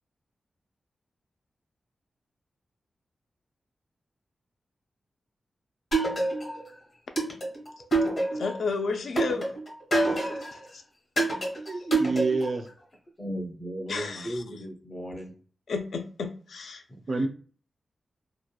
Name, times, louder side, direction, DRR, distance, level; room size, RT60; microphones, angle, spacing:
sound 1, 5.9-6.7 7.2-8.6 9.2-10.6 11.2-12.6, right 2 dB, 45° left, 1.0 m, -27 dB
voice 1, 8.3-9.6 10.2-10.8 13.9-14.4 15.7-16.8, left 4 dB, 70° left, 0.3 m, -32 dB
voice 2, 11.7-12.7 17.1-17.3, right 3 dB, 45° right, 0.3 m, -27 dB
voice 3, 13.2-15.4 16.9-17.0, equal, 20° left, 0.5 m, -36 dB
2.8 x 2.1 x 2.3 m
wide cardioid pair, 160°, 0 cm